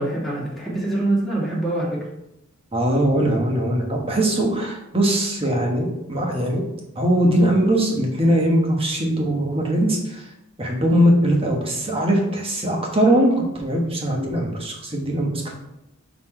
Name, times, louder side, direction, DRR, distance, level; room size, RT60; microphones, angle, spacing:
voice 1, 0.0-2.1, right 1 dB, ahead, -5 dB, 1.8 m, -24 dB
voice 2, 2.7-6.6 6.9-10.2 10.6-15.6, right 1 dB, 25° right, 0 dB, 1.3 m, -21 dB
5.8 x 4.3 x 4.4 m, 0.86 s
head